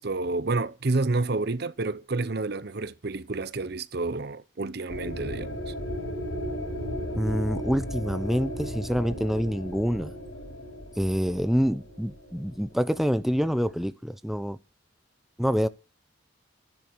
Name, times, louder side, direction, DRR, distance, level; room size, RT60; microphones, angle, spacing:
voice 1, 0.0-5.7, right 3 dB, 55° right, 0.8 m, -29 dB
sound 1, 4.9-13.0, equal, 85° left, 6.4 m, -35 dB
voice 2, 7.2-10.1 11.0-14.6 15.4-15.7, equal, ahead, 0.7 m, -26 dB
14.5 x 10.5 x 6.3 m
head